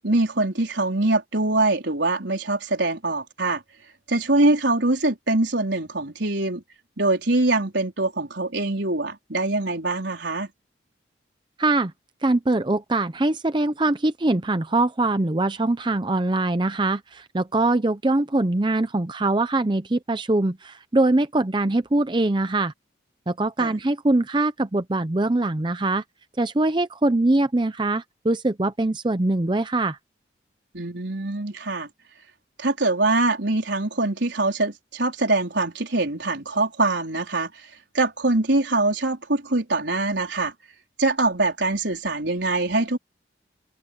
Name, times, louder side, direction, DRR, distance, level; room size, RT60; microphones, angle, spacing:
voice 1, 0.0-3.6 4.1-6.6 7.0-10.5 23.6-23.8 30.7-31.9 32.6-37.7 37.9-40.5 41.0-43.0, right 2 dB, 80° right, 4.3 m, -23 dB
voice 2, 11.6-11.9 12.2-22.7 23.3-26.0 26.4-30.0, right 2 dB, 25° right, 0.6 m, -22 dB
head